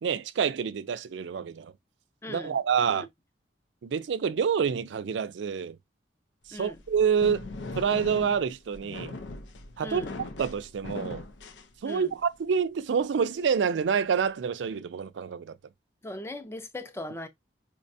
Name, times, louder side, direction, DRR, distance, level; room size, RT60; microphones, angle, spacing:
voice 1, 0.0-1.7 2.3-3.1 3.8-5.8 6.5-7.4 7.8-9.2 9.8-11.2 11.8-15.6, right 6 dB, 80° right, 0.4 m, -27 dB
voice 2, 2.2-2.6 2.9-3.1 6.5-6.8 9.8-10.2 11.8-12.1 16.0-17.3, left 1 dB, 15° left, 0.4 m, -39 dB
sound 1, 6.6-12.2, left 3 dB, 85° left, 0.5 m, -40 dB
4.7 x 2.2 x 2.6 m
head